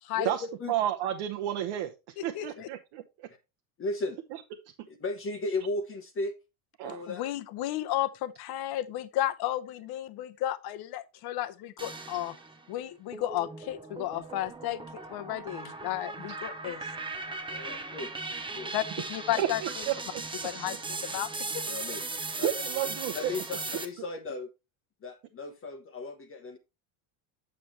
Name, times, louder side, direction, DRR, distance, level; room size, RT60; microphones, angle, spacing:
voice 1, 0.2-1.9 2.2-3.3 4.3-4.4 6.8-7.0 19.4-20.5 22.4-23.3, right 12 dB, 65° right, 1.1 m, -32 dB
voice 2, 2.2-2.7 7.1-12.4 12.7-14.8 15.1-16.9 18.7-18.8 19.1-19.9 20.4-21.7, left 13 dB, 50° left, 1.0 m, -33 dB
voice 3, 3.8-4.2 4.9-6.3 6.8-7.2 17.5-18.1 18.5-18.7 21.7-22.0 22.4-22.5 23.1-24.5 25.0-26.6, left 2 dB, 25° left, 1.1 m, -35 dB
sound 1, 11.8-12.6 13.1-23.8, right 3 dB, 10° right, 0.8 m, -38 dB
7.8 x 7.4 x 3.1 m
cardioid pair, 135°, 49 cm